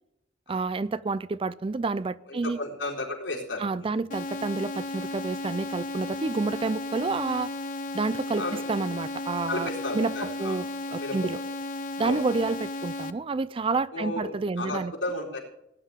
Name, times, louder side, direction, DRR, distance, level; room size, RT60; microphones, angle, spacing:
voice 1, 0.5-2.6 3.6-7.5 7.9-8.4 8.7-9.7 9.9-10.1 10.4-10.6 10.9-11.4 12.0-14.9, right 3 dB, 30° right, 17 dB, 0.4 m, -29 dB
voice 2, 2.3-3.9 8.4-8.7 9.5-10.6 11.0-11.3 12.0-12.2 13.9-15.4, left 2 dB, 85° left, -1 dB, 4.2 m, -33 dB
sound 1, 4.1-13.1, left 2 dB, 45° left, 0.7 m, -34 dB
18.0 x 10.0 x 3.7 m, 0.85 s
head